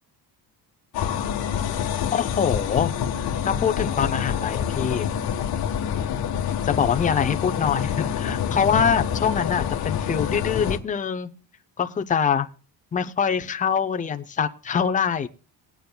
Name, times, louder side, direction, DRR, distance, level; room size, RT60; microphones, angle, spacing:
sound 1, 0.9-10.8, left 8 dB, 60° left, 1.3 m, -27 dB
voice 1, 2.1-2.9 3.4-5.1 6.6-11.3 11.8-12.5 12.9-15.3, left 7 dB, 20° left, 7 dB, 0.5 m, -24 dB
20.5 x 9.1 x 2.2 m, 0.36 s
cardioid pair, 165°, 41 cm